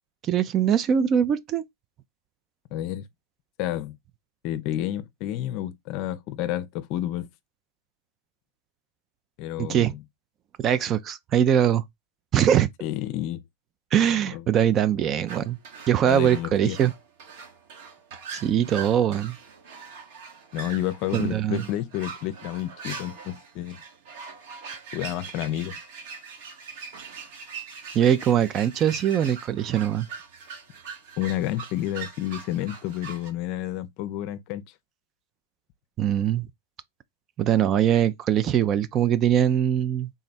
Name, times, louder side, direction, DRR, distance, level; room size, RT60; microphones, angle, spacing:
voice 1, 0.2-1.6 9.6-9.9 10.6-11.8 12.3-12.7 13.9-15.6 15.9-16.9 18.3-19.4 21.1-21.6 27.9-30.1 36.0-36.5 37.4-40.1, right 9 dB, 30° right, 0.4 m, -22 dB
voice 2, 2.7-3.1 3.6-4.0 4.4-7.3 9.4-10.0 12.8-13.4 14.3-14.4 16.1-16.8 20.5-23.8 24.9-25.8 31.2-34.6, left 13 dB, 45° left, 0.5 m, -30 dB
sound 1, 15.3-33.3, right 5 dB, 60° right, 1.2 m, -41 dB
3.6 x 2.2 x 4.1 m
hypercardioid pair, 120°, 0 cm